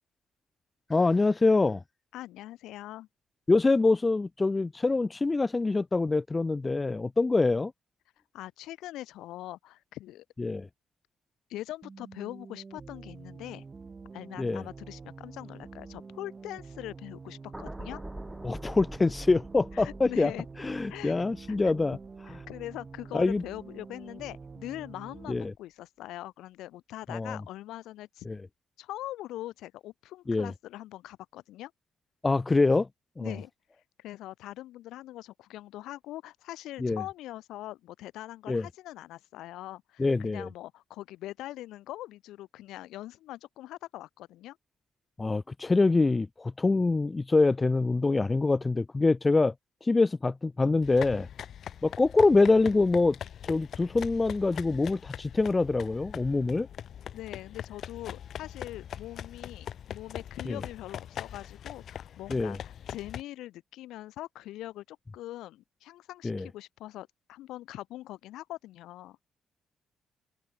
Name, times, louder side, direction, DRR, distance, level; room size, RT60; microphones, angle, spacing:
voice 1, 0.9-1.8 3.5-7.7 10.4-10.7 14.4-14.6 18.4-20.3 20.6-22.0 23.1-23.4 25.3-25.5 27.1-27.4 28.3-28.4 30.3-30.5 32.2-32.9 33.2-33.3 36.8-37.0 38.5-38.7 40.0-40.5 45.2-49.5 49.8-51.3 51.8-53.2 53.5-56.7 60.5-60.6 62.3-62.6 66.2-66.5, left 3 dB, 25° left, 0.4 m, -25 dB
voice 2, 2.1-3.1 8.3-10.2 11.5-13.6 14.1-18.0 19.7-20.5 20.9-21.7 22.3-28.3 28.8-31.7 33.2-33.5 34.0-44.6 57.1-69.2, left 15 dB, 90° left, 5.6 m, -42 dB
sound 1, 11.8-25.4, right 4 dB, 30° right, 7.5 m, -47 dB
sound 2, 17.5-23.8 24.2-24.5, right 1 dB, 10° right, 3.3 m, -46 dB
sound 3, 50.8-63.2, left 9 dB, 65° left, 1.6 m, -42 dB
open air
cardioid pair, 90°, 0 cm